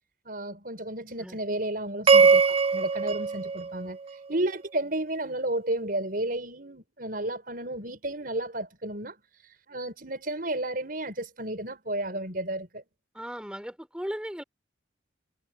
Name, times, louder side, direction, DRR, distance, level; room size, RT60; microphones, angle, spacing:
voice 1, 0.3-4.0 4.3-9.1 9.7-12.8, right 1 dB, 50° right, 5.7 m, -32 dB
sound 1, 2.1-4.4, right 5 dB, 30° right, 0.9 m, -22 dB
voice 2, 13.1-14.4, equal, 5° right, 4.6 m, -36 dB
head